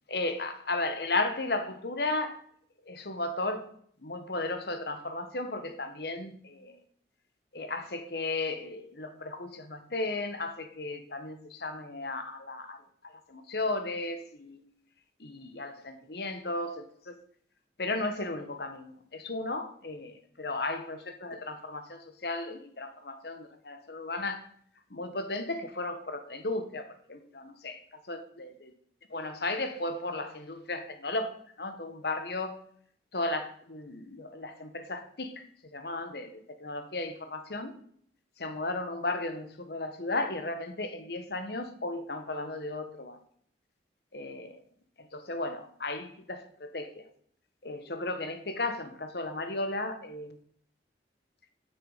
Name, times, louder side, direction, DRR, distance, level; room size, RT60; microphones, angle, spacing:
voice 1, 0.1-2.4 2.8-3.7 4.0-6.8 7.5-12.8 13.0-14.6 15.2-17.1 17.8-24.5 24.9-28.5 29.1-32.6 33.1-35.5 35.7-37.7 38.4-43.2 44.1-44.6 45.0-47.0 47.6-50.4, left 2 dB, 60° left, 1.2 m, -35 dB
9.3 x 6.8 x 5.6 m
head